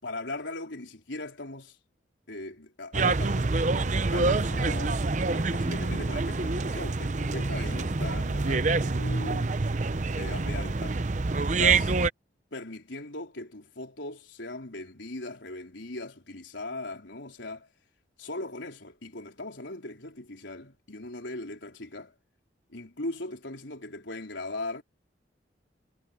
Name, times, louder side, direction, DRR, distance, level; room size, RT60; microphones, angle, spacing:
voice 1, 0.0-1.8 2.3-5.1 5.3-9.5 10.1-11.0 11.4-11.9 12.5-17.7 18.2-22.1 22.7-24.8, left 2 dB, 80° left, 4.1 m, -39 dB
sound 1, 2.9-12.1, right 3 dB, 40° right, 0.7 m, -26 dB
head